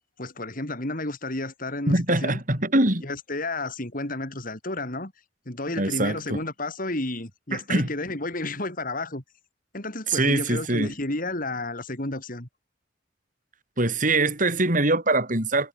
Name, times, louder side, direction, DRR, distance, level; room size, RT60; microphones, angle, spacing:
voice 1, 0.2-2.4 3.0-5.1 5.5-9.2 9.7-12.5, left 2 dB, 45° left, 4.0 m, -31 dB
voice 2, 1.9-3.1 5.8-6.4 7.5-7.9 10.1-10.9 13.8-15.7, right 2 dB, 45° right, 6.2 m, -23 dB
head